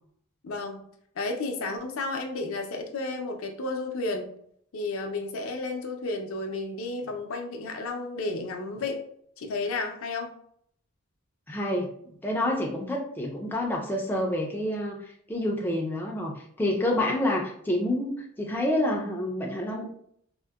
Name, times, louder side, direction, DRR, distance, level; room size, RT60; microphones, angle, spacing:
voice 1, 0.4-0.8 1.2-4.3 4.7-9.0 9.4-10.3, left 3 dB, 65° left, 4 dB, 0.5 m, -32 dB
voice 2, 11.5-11.9 12.2-19.9, left 1 dB, 10° left, -1 dB, 0.3 m, -28 dB
3.6 x 2.0 x 2.2 m, 0.67 s
head